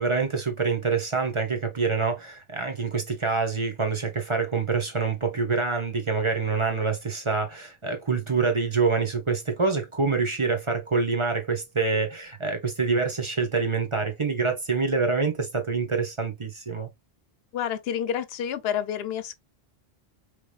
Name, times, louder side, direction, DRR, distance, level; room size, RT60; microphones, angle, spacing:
voice 1, 0.0-16.9, right 4 dB, 30° right, 1.0 m, -26 dB
voice 2, 17.5-19.3, left 9 dB, 75° left, 0.8 m, -29 dB
4.9 x 3.3 x 2.3 m
omnidirectional pair, 1.0 m